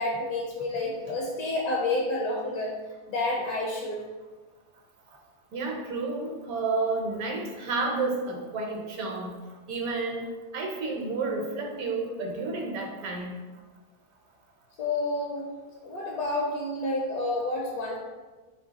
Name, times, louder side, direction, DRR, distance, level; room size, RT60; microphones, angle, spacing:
voice 1, 0.0-2.8 3.1-4.0 14.8-15.5 15.8-18.0, left 2 dB, 70° left, -2 dB, 1.1 m, -29 dB
voice 2, 5.5-9.3 9.7-10.3 10.5-13.3, right 3 dB, 70° right, 1 dB, 1.1 m, -31 dB
3.8 x 3.1 x 3.9 m, 1.3 s
omnidirectional pair, 1.7 m